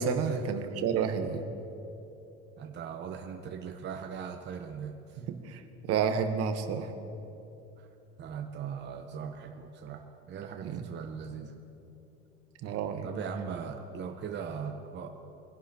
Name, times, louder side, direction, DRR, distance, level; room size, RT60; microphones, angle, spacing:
voice 1, 0.0-1.4 5.5-6.9 10.6-10.8 12.6-13.1, right 6 dB, 55° right, 7 dB, 1.2 m, -30 dB
voice 2, 2.6-5.2 7.8-7.9 8.2-11.5 13.0-15.1, right 7 dB, 35° right, 4 dB, 1.0 m, -39 dB
23.0 x 11.0 x 3.0 m, 2.8 s
supercardioid pair, 95°, 30 cm